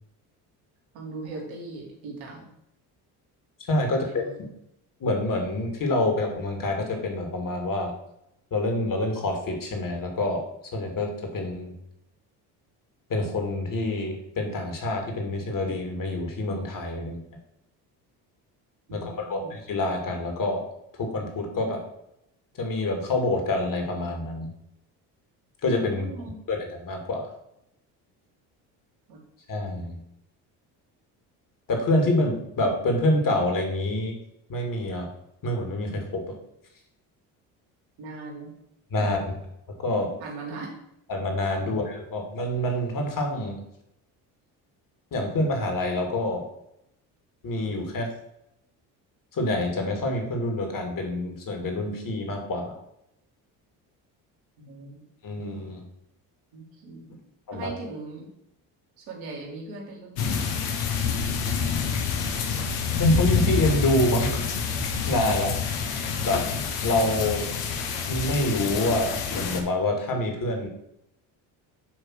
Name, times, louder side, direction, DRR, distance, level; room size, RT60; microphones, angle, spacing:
voice 1, 0.9-2.5 3.8-4.4 18.9-19.5 25.9-26.4 29.1-29.2 38.0-38.5 39.0-39.4 40.2-40.7 41.6-41.8 54.6-55.0 56.5-57.2 57.5-58.3 59.0-60.7, right 3 dB, 80° right, -2 dB, 2.7 m, -40 dB
voice 2, 3.7-4.5 5.0-7.9 8.5-10.4 10.7-11.7 13.1-17.2 18.9-20.6 21.0-21.8 22.6-24.5 25.6-26.1 26.5-27.3 29.5-30.0 31.7-34.2 34.5-35.1 35.4-36.2 38.9-39.2 39.8-40.1 41.1-43.6 45.1-46.4 47.4-48.1 49.3-52.7 55.2-55.8 57.5-57.7 63.0-64.6 65.1-65.8 66.2-66.5 66.8-67.5 68.1-70.7, left 1 dB, 45° left, 3 dB, 2.5 m, -27 dB
sound 1, 60.2-69.6, left 5 dB, 75° left, 1.3 m, -27 dB
8.7 x 3.4 x 6.5 m, 0.81 s
supercardioid pair, 70°, 45 cm